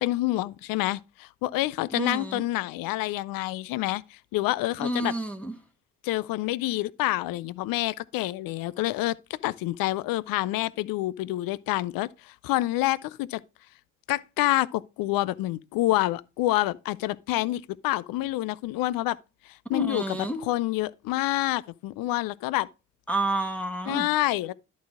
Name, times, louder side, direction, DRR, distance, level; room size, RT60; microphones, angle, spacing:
voice 1, 0.0-4.0 4.3-5.1 6.0-13.4 14.1-19.2 19.7-20.0 20.4-22.7 23.9-24.5, left 17 dB, 70° left, 0.5 m, -27 dB
voice 2, 1.9-2.4 4.8-5.5 19.7-20.4 23.1-24.1, right 2 dB, 5° left, 1.3 m, -29 dB
11.0 x 4.1 x 4.8 m
hypercardioid pair, 45°, 36 cm